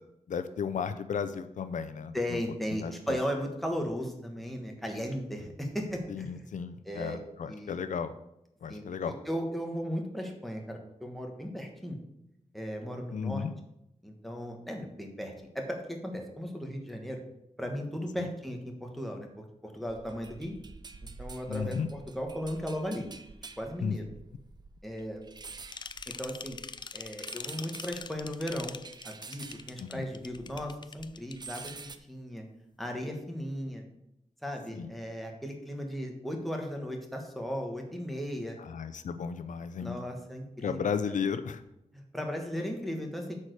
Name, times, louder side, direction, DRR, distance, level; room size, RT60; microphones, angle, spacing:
voice 1, 0.3-2.1 2.7-3.2 6.1-8.1 8.6-9.1 13.1-13.5 18.2-18.3 21.5-21.9 23.8-24.0 29.8-30.1 34.7-34.9 38.6-40.0 40.6-41.6, left 6 dB, 85° left, 11 dB, 0.6 m, -34 dB
voice 2, 2.1-6.5 6.8-7.2 7.4-7.7 8.7-12.0 12.5-13.4 14.0-17.2 17.6-20.6 21.2-23.1 23.6-24.0 24.8-25.2 26.1-26.6 26.9-28.7 29.0-32.4 32.8-33.8 34.4-38.6 39.8-40.8 41.9-43.3, equal, ahead, 1 dB, 1.4 m, -36 dB
sound 1, 19.9-30.7 31.0-32.0, right 4 dB, 35° right, 0.5 m, -48 dB
sound 2, 25.7-31.8, left 5 dB, 35° left, 0.3 m, -43 dB
8.4 x 4.9 x 6.5 m, 0.82 s
wide cardioid pair, 175°, 13 cm